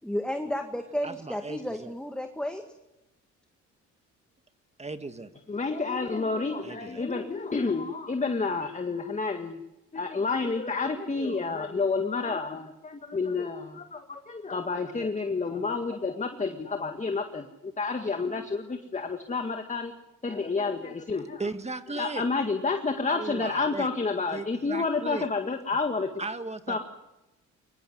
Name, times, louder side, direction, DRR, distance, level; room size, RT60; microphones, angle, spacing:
voice 1, 0.0-2.6, equal, 5° left, 5 dB, 1.9 m, -32 dB
voice 2, 1.0-1.9 4.8-5.3 6.6-7.0 21.4-22.3 23.1-23.9 24.3-25.3 26.2-26.8, right 3 dB, 20° right, 9 dB, 1.9 m, -36 dB
voice 3, 5.5-9.6 9.9-19.9 20.2-21.4 22.0-26.1 26.7-26.8, left 4 dB, 25° left, 6 dB, 1.9 m, -29 dB
23.5 x 20.5 x 9.6 m, 0.93 s
cardioid pair, 90°, 30 cm